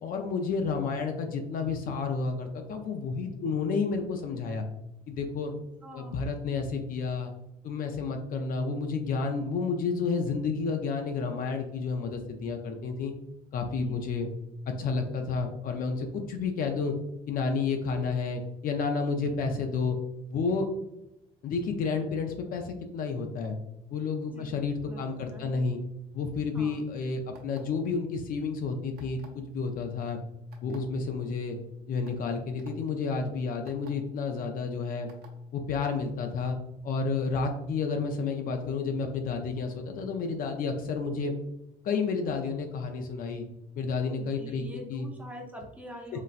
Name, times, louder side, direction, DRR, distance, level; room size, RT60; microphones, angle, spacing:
voice 1, 0.0-4.6 5.1-5.5 5.9-7.3 7.6-13.1 13.5-14.3 14.7-16.9 17.3-20.0 20.3-20.7 21.4-23.6 23.9-25.8 26.1-30.2 30.6-31.6 31.9-35.1 35.5-36.6 36.8-41.3 41.8-43.4 43.8-44.6 44.9-45.1, left 4 dB, 55° left, 5 dB, 0.4 m, -30 dB
voice 2, 5.8-6.1 13.8-14.0 24.3-24.5 24.9-25.5 26.5-26.8 44.2-46.2, equal, 10° right, -1 dB, 0.7 m, -45 dB
sound 1, 27.3-27.8 29.0-29.4 30.5-30.8 31.5-31.6 32.0-32.2 32.6-32.7 33.7-33.9 35.1-35.3, right 7 dB, 70° right, 0.7 m, -53 dB
3.9 x 2.1 x 2.4 m, 0.87 s
cardioid pair, 110°, 17 cm